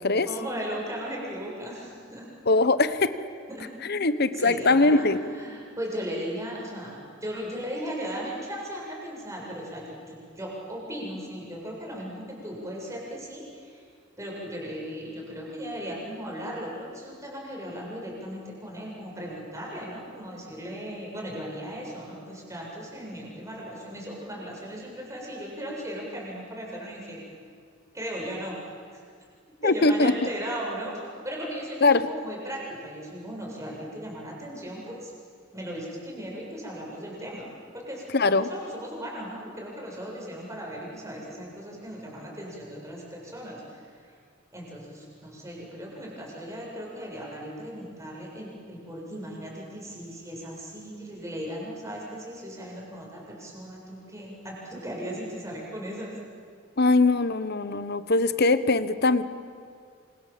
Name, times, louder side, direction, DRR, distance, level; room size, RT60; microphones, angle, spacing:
voice 1, 0.2-2.3 3.5-3.7 4.3-5.0 5.3-13.8 14.2-27.2 27.9-28.6 28.9-29.0 29.6-35.1 35.5-37.5 37.7-44.1 44.5-56.1, equal, 15° right, -3 dB, 7.7 m, -37 dB
voice 2, 2.5-3.1 3.8-5.2 29.6-30.1 31.8-32.0 38.1-38.5 56.8-59.2, left 3 dB, 50° left, 13 dB, 1.2 m, -21 dB
28.0 x 27.0 x 7.7 m, 2.2 s
head